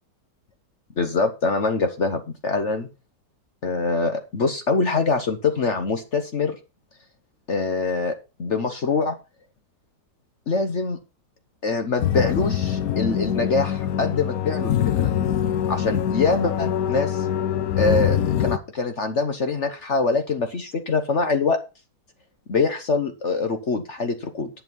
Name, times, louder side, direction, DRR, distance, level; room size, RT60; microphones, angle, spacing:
voice 1, 1.0-2.9 3.6-6.6 7.5-9.2 10.5-11.0 11.6-15.1 15.7-17.3 17.8-21.6 22.5-24.5, left 4 dB, 50° left, 6 dB, 1.3 m, -24 dB
sound 1, 12.0-18.6, left 9 dB, 65° left, 1.2 m, -24 dB
10.5 x 7.2 x 5.4 m, 0.30 s
omnidirectional pair, 1.8 m